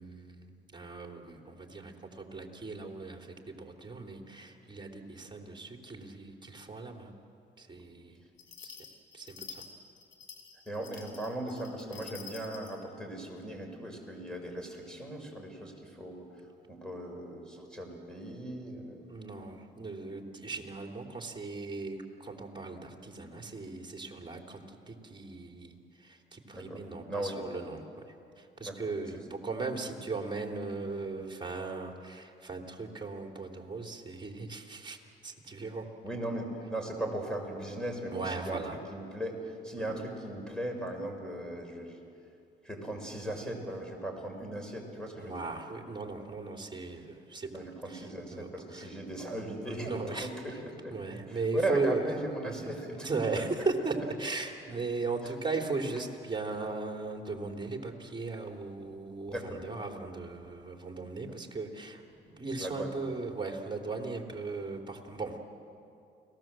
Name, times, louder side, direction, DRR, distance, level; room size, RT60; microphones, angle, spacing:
voice 1, 0.0-7.1 7.6-8.2 8.6-8.8 9.1-9.6 19.1-35.9 38.1-38.8 39.9-40.0 45.1-48.9 49.7-50.6 50.9-52.1 52.4-52.5 53.0-65.4, right 3 dB, 25° right, 2 dB, 3.4 m, -38 dB
sound 1, 8.4-12.8, left 6 dB, 65° left, 3.7 m, -48 dB
voice 2, 10.7-16.3 16.7-19.1 26.5-26.8 27.1-27.4 28.6-28.9 36.0-38.6 38.9-42.0 42.6-45.5 47.5-50.9 51.3-53.1 59.3-59.6 61.3-61.4 62.6-62.9, right 1 dB, 5° left, 2 dB, 5.5 m, -37 dB
29.5 x 18.5 x 7.6 m, 2.6 s
cardioid pair, 90°, 20 cm